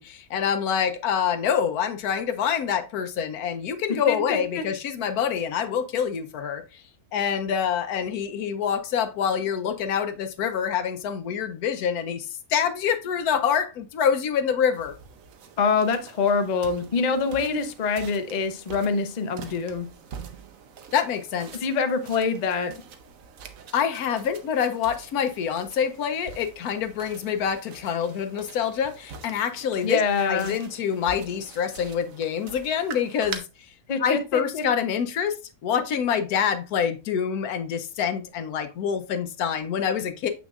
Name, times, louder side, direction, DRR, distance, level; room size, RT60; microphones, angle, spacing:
voice 1, 0.0-6.8 7.1-14.9 20.9-21.5 23.7-30.0 30.3-33.4 34.0-40.3, left 7 dB, 75° left, 1.1 m, -26 dB
voice 2, 4.1-4.6 15.6-19.9 21.6-22.7 29.8-30.6 33.9-34.6, left 5 dB, 60° left, 0.4 m, -25 dB
sound 1, 14.7-33.4, right 6 dB, 65° right, 1.1 m, -44 dB
6.9 x 6.1 x 2.4 m
omnidirectional pair, 1.7 m